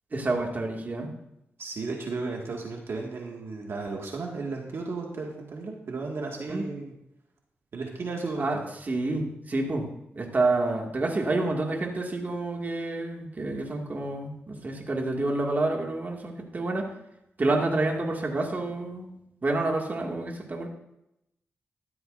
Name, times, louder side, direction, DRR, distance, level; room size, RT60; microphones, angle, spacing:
voice 1, 0.1-1.1 6.5-6.6 8.4-8.6 8.9-16.9 17.4-20.7, right 2 dB, 40° right, 1 dB, 2.2 m, -28 dB
voice 2, 1.6-6.9 7.7-8.6, right 3 dB, 65° right, 0 dB, 2.0 m, -34 dB
14.0 x 12.0 x 2.6 m, 0.83 s
cardioid pair, 75°, 5 cm